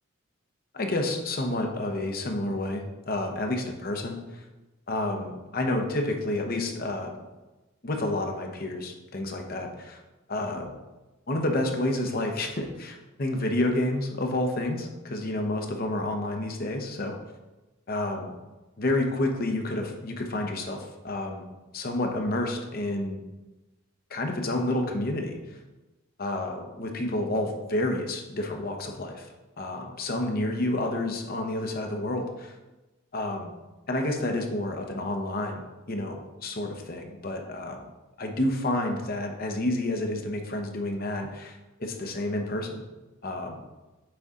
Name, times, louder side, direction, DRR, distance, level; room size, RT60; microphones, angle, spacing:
voice 1, 0.7-4.4 4.9-7.1 7.8-10.0 10.3-10.7 11.3-17.2 17.9-18.3 18.8-21.4 21.7-23.2 24.1-25.6 26.2-29.3 29.6-32.6 33.1-33.5 33.9-37.8 38.2-42.8 43.2-43.6, left 1 dB, 45° left, 3 dB, 0.8 m, -29 dB
7.7 x 4.2 x 3.7 m, 1.1 s
head